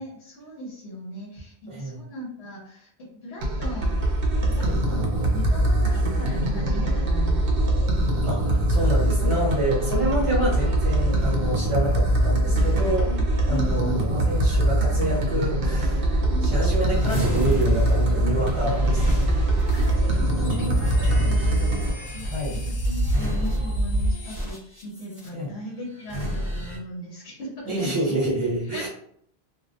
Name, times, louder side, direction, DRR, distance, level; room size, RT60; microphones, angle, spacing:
voice 1, 0.0-4.0 4.4-7.6 13.0-14.1 16.2-16.5 18.6-18.7 19.7-28.9, equal, 75° left, -4 dB, 0.9 m, -38 dB
voice 2, 1.7-2.0 4.6-4.9 8.2-13.2 13.5-19.0 21.1-21.4 22.3-22.6 25.3-25.5 27.6-28.9, right 1 dB, 30° right, -6 dB, 0.9 m, -28 dB
sound 1, 3.4-21.9, right 1 dB, 65° right, 0.7 m, -22 dB
sound 2, 17.0-25.3 26.0-26.8, equal, 50° left, 1.1 m, -28 dB
2.3 x 2.0 x 2.7 m, 0.64 s
omnidirectional pair, 1.1 m